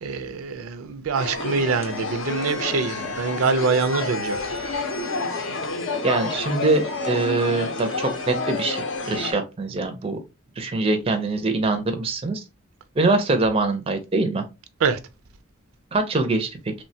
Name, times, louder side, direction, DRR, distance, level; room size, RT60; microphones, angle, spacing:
voice 1, 0.0-4.7 14.8-15.0, right 4 dB, 90° right, 0.4 m, -25 dB
sound 1, 1.1-9.3, left 3 dB, 65° left, 0.6 m, -29 dB
voice 2, 6.0-10.2 10.6-12.4 13.0-14.4 15.9-16.7, right 2 dB, 25° right, 0.4 m, -23 dB
3.0 x 2.1 x 2.6 m
head